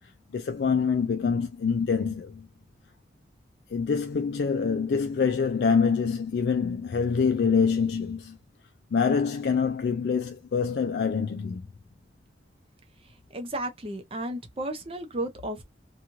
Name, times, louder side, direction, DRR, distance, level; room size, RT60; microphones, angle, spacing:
voice 1, 0.3-2.5 3.7-8.4 8.9-11.6, left 5 dB, 70° left, 0.3 m, -25 dB
voice 2, 13.0-15.6, right 1 dB, 30° right, 0.6 m, -34 dB
3.0 x 2.3 x 2.5 m
head